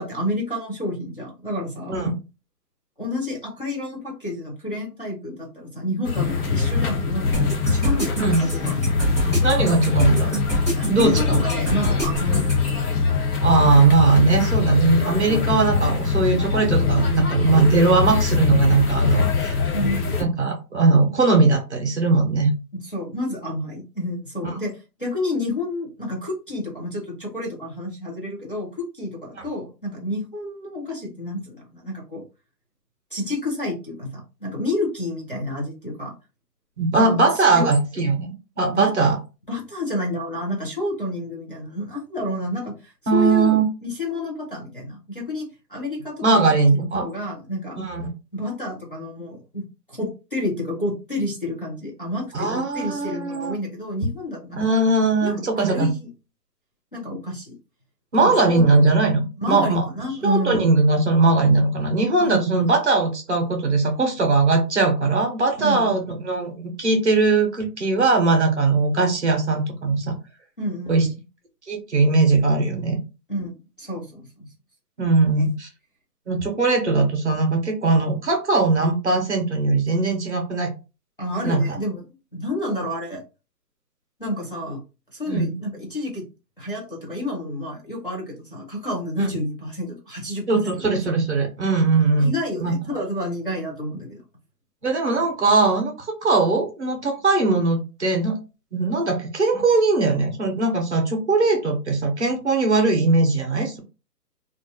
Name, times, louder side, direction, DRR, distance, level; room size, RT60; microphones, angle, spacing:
voice 1, 0.0-2.2 3.0-8.7 10.8-12.4 19.7-20.2 22.8-24.7 25.0-32.2 33.1-36.1 36.9-37.2 37.5-37.7 38.7-38.9 39.5-46.4 46.7-47.8 48.3-54.6 55.2-56.0 56.9-57.6 58.2-58.6 59.4-60.6 62.2-62.5 65.6-66.0 70.6-71.1 73.3-74.5 81.2-82.0 82.3-83.2 84.2-84.8 85.1-86.2 86.6-90.9 92.2-94.2, left 1 dB, 35° left, -3 dB, 0.5 m, -29 dB
sound 1, 6.0-20.2, left 4 dB, 65° left, 1.0 m, -22 dB
sound 2, 7.3-12.6, right 1 dB, 15° left, 0.9 m, -26 dB
voice 2, 9.4-10.4 10.9-11.4 13.4-19.7 20.2-22.5 24.4-24.6 29.3-29.4 36.8-39.2 43.1-43.7 46.2-47.1 47.8-48.1 52.3-53.6 54.5-55.9 58.1-59.8 60.2-70.1 70.9-71.1 71.7-73.0 75.0-75.7 76.3-80.7 81.4-81.6 85.3-85.6 89.2-89.3 90.5-92.3 92.6-92.7 94.8-98.4 98.7-103.8, right 3 dB, 45° right, 3 dB, 0.7 m, -20 dB
2.5 x 2.3 x 2.6 m, 0.29 s
hypercardioid pair, 175°, 49 cm